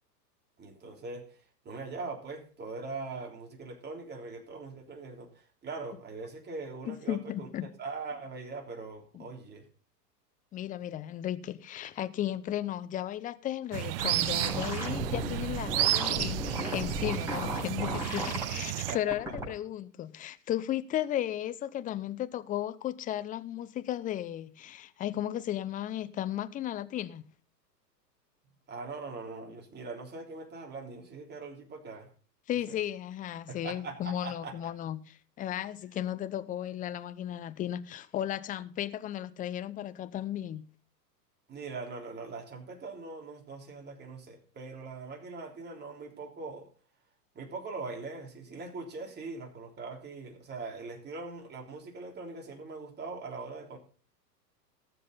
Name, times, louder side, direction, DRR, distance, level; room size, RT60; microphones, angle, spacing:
voice 1, 0.6-1.4 1.6-9.6 18.7-19.2 28.7-32.1 32.7-32.8 33.5-34.8 41.5-46.7 47.3-53.8, right 3 dB, 20° right, 3.3 m, -41 dB
voice 2, 6.9-7.7 9.1-9.3 10.5-27.2 32.5-40.6, left 12 dB, 15° left, 0.7 m, -35 dB
sound 1, 13.7-19.0, right 16 dB, 35° right, 0.5 m, -32 dB
sound 2, 14.0-18.4 18.9-19.4, equal, 5° right, 6.4 m, -35 dB
18.5 x 7.7 x 4.0 m
hypercardioid pair, 105°, 49 cm